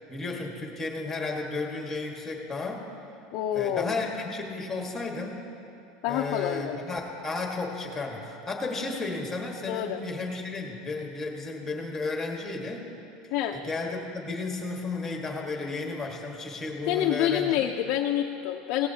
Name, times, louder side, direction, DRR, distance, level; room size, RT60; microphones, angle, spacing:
voice 1, 0.1-2.9 3.5-5.4 6.1-12.8 13.5-17.7, left 3 dB, 10° left, 1 dB, 1.4 m, -33 dB
voice 2, 3.3-4.0 6.0-6.8 9.7-10.0 13.3-13.6 16.9-18.9, left 11 dB, 50° left, 2 dB, 0.6 m, -27 dB
17.5 x 14.5 x 2.8 m, 2.8 s
supercardioid pair, 150°, 2 cm